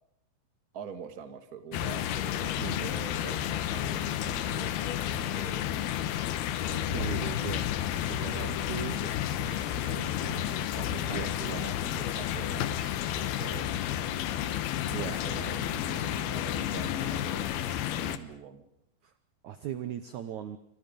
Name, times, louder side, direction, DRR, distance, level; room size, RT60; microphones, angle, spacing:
voice 1, 0.7-6.0 6.7-7.6 8.9-13.7 14.9-18.6, right 7 dB, 40° right, 8 dB, 1.4 m, -45 dB
sound 1, 1.7-18.2, left 11 dB, 75° left, 2.9 m, -31 dB
voice 2, 6.9-7.6 8.1-9.0 11.1-11.7 14.9-15.2 19.0-19.1 19.4-20.6, right 10 dB, 75° right, 11 dB, 1.7 m, -38 dB
28.0 x 25.5 x 5.4 m, 0.76 s
omnidirectional pair, 4.7 m